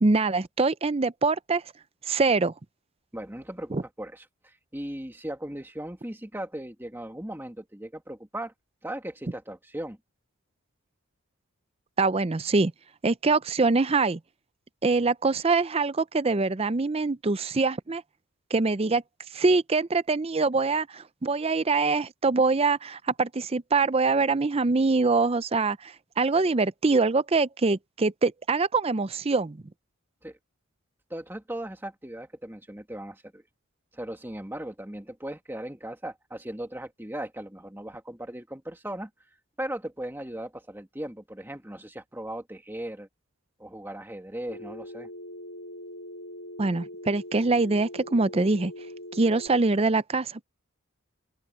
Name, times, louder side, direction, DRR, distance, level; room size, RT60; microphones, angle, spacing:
voice 1, 0.0-1.6 2.1-2.5 3.7-3.8 12.0-12.7 13.0-14.2 14.8-18.0 18.5-19.0 19.3-29.6 46.6-48.7 49.1-50.4, right 3 dB, 25° right, 0.5 m, -24 dB
voice 2, 3.1-8.5 8.8-10.0 30.2-30.4 31.1-33.4 33.9-39.1 39.6-43.1 43.6-45.1, right 1 dB, 10° right, 2.0 m, -38 dB
Telephone, 44.5-49.5, left 1 dB, 60° left, 6.5 m, -42 dB
open air
head